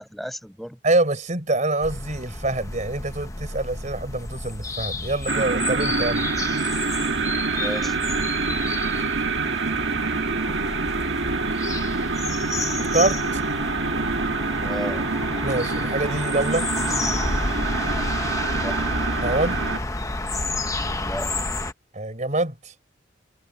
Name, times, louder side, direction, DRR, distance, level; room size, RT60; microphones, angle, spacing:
voice 1, 0.0-0.8 7.5-8.2 14.6-15.1 18.6-18.8 21.0-21.3, equal, ahead, 6.6 m, -34 dB
voice 2, 0.8-6.2 12.8-13.4 15.4-16.7 19.2-19.6 21.9-22.7, right 2 dB, 40° right, 4.5 m, -25 dB
sound 1, 1.8-21.7, left 2 dB, 15° left, 1.0 m, -30 dB
sound 2, 5.3-19.8, right 4 dB, 65° right, 1.6 m, -26 dB
head